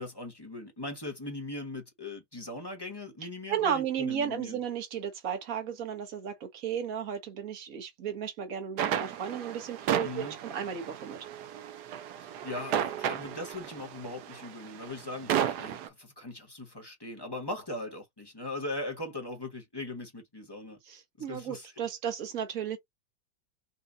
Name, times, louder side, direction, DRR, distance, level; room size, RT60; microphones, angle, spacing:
voice 1, 0.0-4.6 10.0-10.4 12.2-20.8 21.3-21.7, left 2 dB, 15° left, 1.1 m, -40 dB
voice 2, 3.5-11.2 20.9-22.8, right 8 dB, 50° right, 1.7 m, -34 dB
sound 1, 8.8-15.9, right 10 dB, 70° right, 1.1 m, -33 dB
5.6 x 2.4 x 2.6 m
omnidirectional pair, 2.0 m